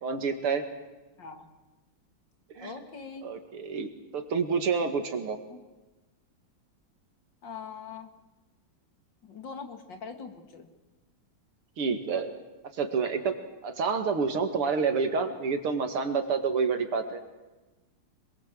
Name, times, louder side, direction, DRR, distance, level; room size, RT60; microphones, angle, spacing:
voice 1, 0.0-0.6 2.6-2.7 3.2-5.4 11.8-12.3 12.7-13.3 13.6-17.2, right 5 dB, 85° right, 7 dB, 2.9 m, -28 dB
voice 2, 1.2-1.5 2.5-3.3 5.5-5.6 7.4-8.1 9.2-10.7, left 5 dB, 55° left, 6 dB, 2.7 m, -42 dB
26.5 x 21.5 x 7.7 m, 1.1 s
omnidirectional pair, 2.4 m